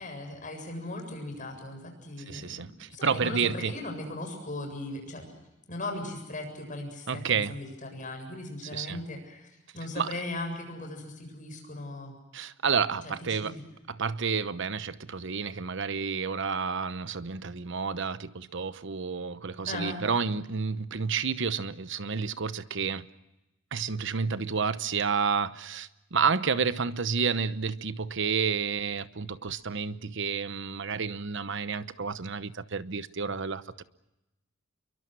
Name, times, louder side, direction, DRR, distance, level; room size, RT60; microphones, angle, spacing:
voice 1, 0.0-5.3 5.7-9.5 9.7-12.1 13.0-13.6 19.7-20.0, left 2 dB, 40° left, 7.6 m, -38 dB
voice 2, 2.3-3.7 7.1-7.5 8.7-9.0 10.0-10.1 12.3-13.6 13.9-23.1 23.7-33.8, right 5 dB, 65° right, 1.0 m, -30 dB
29.0 x 23.0 x 6.2 m
head